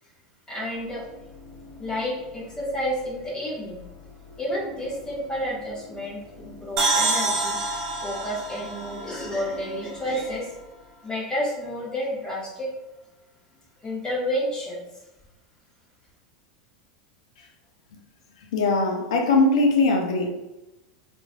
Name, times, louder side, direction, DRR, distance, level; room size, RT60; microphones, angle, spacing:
voice 1, 0.5-1.0 1.8-3.8 4.4-7.6 8.0-10.5 11.0-12.7 13.8-14.8, equal, 20° left, -5 dB, 1.2 m, -30 dB
sound 1, 0.7-11.5, left 3 dB, 45° left, 0.8 m, -47 dB
sound 2, 6.8-10.3, right 3 dB, 60° right, 0.7 m, -27 dB
voice 2, 18.5-20.3, left 3 dB, 75° left, 2 dB, 0.6 m, -21 dB
3.0 x 2.6 x 2.2 m, 0.98 s
hypercardioid pair, 90°, 3 cm